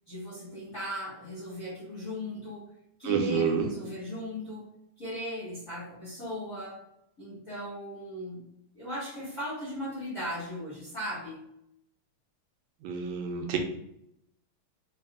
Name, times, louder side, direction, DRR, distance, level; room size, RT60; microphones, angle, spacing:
voice 1, 0.1-2.6 3.0-4.6 5.0-6.8 7.2-8.4 8.7-11.4, equal, 35° left, -9 dB, 1.3 m, -37 dB
voice 2, 3.0-3.7 12.8-13.6, right 7 dB, 80° right, 3 dB, 1.8 m, -28 dB
5.6 x 2.5 x 2.3 m, 0.77 s
omnidirectional pair, 3.3 m